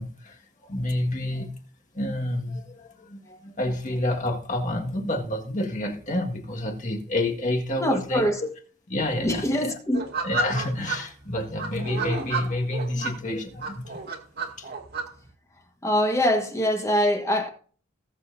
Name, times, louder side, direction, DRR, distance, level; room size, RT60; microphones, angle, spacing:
voice 1, 0.0-1.5 1.9-8.5 8.9-9.7 10.2-14.0 14.6-14.7, left 1 dB, 35° left, 1.8 m, -29 dB
voice 2, 7.8-8.4 9.1-10.1 15.8-17.5, equal, 15° left, 1.4 m, -24 dB
sound 1, 9.9-11.0 11.6-13.1 13.6-15.0, right 3 dB, 50° right, 2.1 m, -30 dB
19.0 x 7.4 x 2.7 m
head